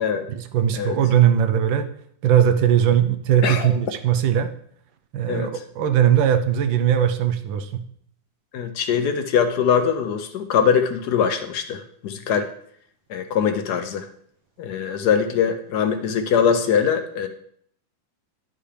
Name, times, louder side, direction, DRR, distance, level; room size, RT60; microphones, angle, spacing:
voice 1, 0.3-1.9 2.2-4.5 5.1-7.8, right 9 dB, 90° right, 8 dB, 1.5 m, -19 dB
voice 2, 8.5-12.5 13.1-14.1 14.6-17.3, left 7 dB, 65° left, 8 dB, 1.1 m, -22 dB
11.0 x 5.7 x 3.3 m, 0.64 s
omnidirectional pair, 2.1 m